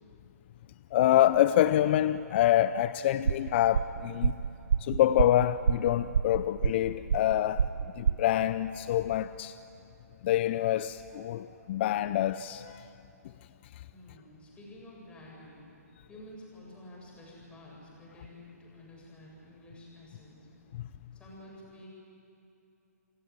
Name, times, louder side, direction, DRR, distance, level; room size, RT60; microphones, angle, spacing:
voice 1, 0.9-4.3 4.8-7.7 8.0-9.6 10.2-12.8 20.7-20.9, left 12 dB, 40° left, 14 dB, 0.5 m, -26 dB
sound 1, 3.2-8.2, right 7 dB, 75° right, 0.5 m, -29 dB
voice 2, 13.9-15.6 16.1-20.4 21.1-21.9, left 1 dB, 10° left, -3 dB, 7.6 m, -50 dB
28.5 x 17.0 x 9.7 m, 2.8 s
hypercardioid pair, 135°, 9 cm